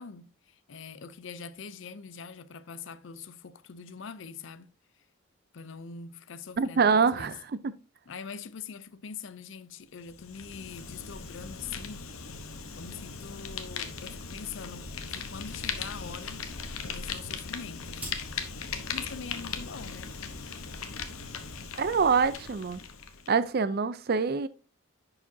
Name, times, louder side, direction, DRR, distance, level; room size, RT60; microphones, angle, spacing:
voice 1, 0.0-4.7 5.0-5.1 5.5-7.3 8.1-12.1 12.8-16.5 16.9-18.2 18.9-20.2, left 6 dB, 60° left, 0.5 m, -43 dB
voice 2, 6.6-7.4 7.6-7.7 21.8-22.8 23.3-24.5, right 5 dB, 45° right, 0.4 m, -25 dB
Fire, 10.0-23.3, left 5 dB, 80° left, 1.0 m, -39 dB
sound 1, 14.8-22.5, equal, 5° right, 3.1 m, -50 dB
10.5 x 4.9 x 2.7 m
head